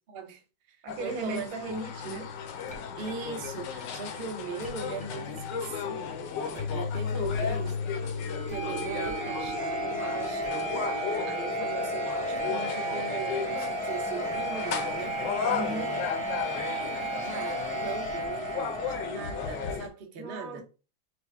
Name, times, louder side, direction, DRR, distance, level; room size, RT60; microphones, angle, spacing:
voice 1, 0.1-0.4 0.7-1.5 2.0-2.2 3.0-8.0 8.5-15.2 15.6-16.1 17.2-20.6, right 5 dB, 50° right, 0.6 m, -40 dB
voice 2, 0.8-2.3 15.5-16.0 20.2-20.6, right 2 dB, 85° right, 1.7 m, -36 dB
sound 1, 0.9-19.9, left 7 dB, 75° left, 1.2 m, -36 dB
sound 2, 1.7-19.8, equal, 5° left, 0.7 m, -34 dB
5.5 x 2.1 x 3.5 m
omnidirectional pair, 2.0 m